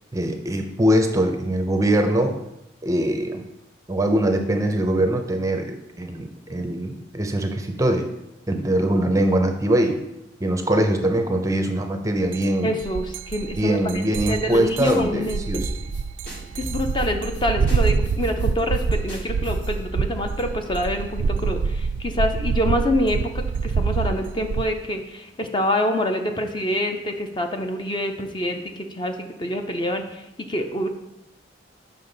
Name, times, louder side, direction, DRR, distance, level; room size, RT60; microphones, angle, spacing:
voice 1, 0.1-2.4 2.8-3.4 3.9-8.1 8.5-10.0 10.4-12.7 13.6-15.7, right 1 dB, 15° right, 5 dB, 0.5 m, -22 dB
sound 1, 12.3-12.5 12.8-24.6, right 5 dB, 75° right, 0.3 m, -26 dB
voice 2, 12.6-15.7 16.5-30.9, left 1 dB, 25° left, 5 dB, 0.5 m, -26 dB
sound 2, 14.1-14.6 14.8-15.0 15.2-15.3 15.6-16.0 16.3-17.4 17.7-17.8 18.0-19.7, right 1 dB, 90° left, 2.8 m, -35 dB
7.0 x 5.6 x 3.9 m, 0.89 s
head